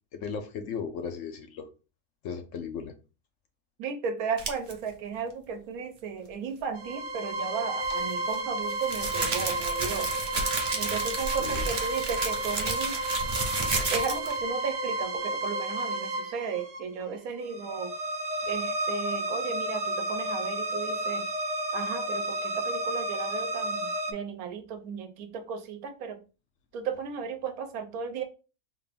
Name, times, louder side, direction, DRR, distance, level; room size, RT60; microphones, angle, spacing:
voice 1, 0.1-1.7 2.2-2.9 11.4-11.6, left 6 dB, 65° left, 0.9 m, -36 dB
voice 2, 3.8-10.1 10.8-13.0 13.9-18.0 18.5-21.3 21.7-26.2 26.7-28.2, right 6 dB, 85° right, 1.1 m, -35 dB
sound 1, 4.4-4.7 7.8-14.4, right 3 dB, 40° right, 0.6 m, -32 dB
sound 2, 6.7-24.1, right 2 dB, 65° right, 0.9 m, -32 dB
3.6 x 2.5 x 3.4 m
omnidirectional pair, 1.5 m